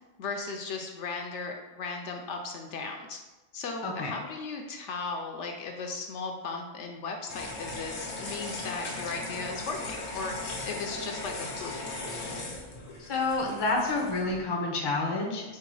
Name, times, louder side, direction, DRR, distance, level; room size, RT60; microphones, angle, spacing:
voice 1, 0.2-3.2 3.5-11.8, left 4 dB, 70° left, 3 dB, 0.9 m, -36 dB
voice 2, 3.8-4.2 13.0-15.6, left 3 dB, 30° left, 0 dB, 0.5 m, -29 dB
sound 1, 7.3-14.4, left 2 dB, 90° left, 1.2 m, -38 dB
4.5 x 2.2 x 4.6 m, 1.1 s
omnidirectional pair, 1.3 m